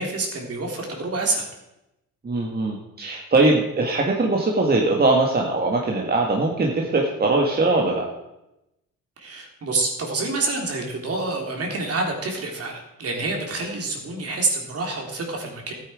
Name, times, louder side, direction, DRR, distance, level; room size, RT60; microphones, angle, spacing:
voice 1, 0.0-1.4 9.2-15.7, right 3 dB, 50° right, 1 dB, 3.4 m, -27 dB
voice 2, 2.2-8.1, right 2 dB, 30° right, 0 dB, 1.9 m, -21 dB
13.5 x 9.0 x 4.9 m, 0.90 s
cardioid pair, 90°, 30 cm